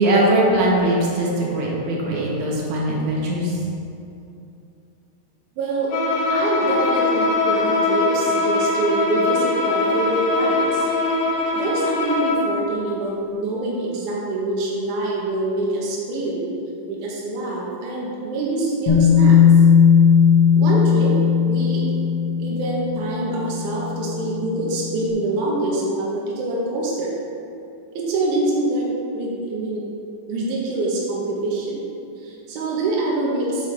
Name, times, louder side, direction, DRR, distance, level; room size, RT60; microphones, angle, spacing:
voice 1, 0.0-3.6, right 1 dB, 60° right, -4 dB, 2.2 m, -20 dB
voice 2, 5.6-5.9 6.3-10.9 11.5-16.4 16.9-19.4 20.6-21.2 21.4-21.8 22.4-27.1 27.9-28.9 29.1-29.8 30.3-31.8 32.2-33.7, right 2 dB, 85° right, -4 dB, 1.7 m, -25 dB
Bowed string instrument, 5.9-12.6, left 3 dB, 75° left, 3.4 m, -21 dB
Bass guitar, 18.9-24.9, left 7 dB, 50° left, 2.6 m, -17 dB
8.5 x 7.8 x 3.4 m, 2.7 s
omnidirectional pair, 5.1 m